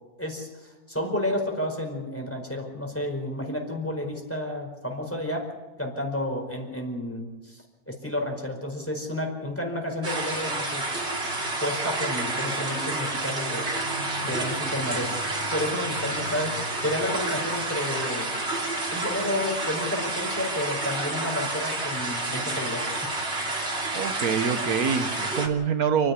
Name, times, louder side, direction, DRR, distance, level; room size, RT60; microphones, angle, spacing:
voice 1, 0.2-5.5 5.8-10.9 11.6-13.7 14.2-15.2 15.5-18.3 18.9-23.1, left 1 dB, 10° left, 2 dB, 4.9 m, -31 dB
sound 1, 10.0-25.5, right 2 dB, 50° right, 3.2 m, -29 dB
voice 2, 23.9-26.1, right 6 dB, 90° right, 9 dB, 1.7 m, -25 dB
29.5 x 11.0 x 9.8 m, 1.2 s
omnidirectional pair, 1.5 m